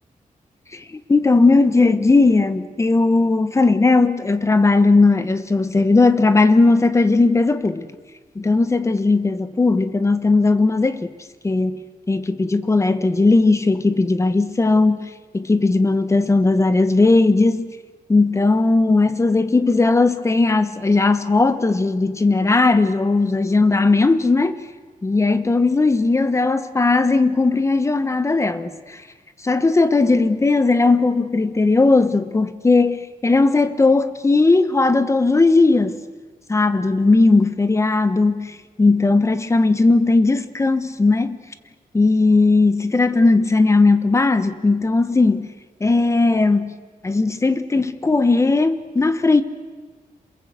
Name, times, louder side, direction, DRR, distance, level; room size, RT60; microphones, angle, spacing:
voice 1, 0.7-7.9 8.3-11.1 11.4-15.1 15.3-17.7 18.1-24.6 25.0-29.0 29.4-36.0 36.5-41.4 41.9-45.5 45.8-46.8 47.0-49.4, left 3 dB, 20° left, 1.2 m, -17 dB
27.5 x 21.5 x 8.2 m
wide cardioid pair, 170°, 15 cm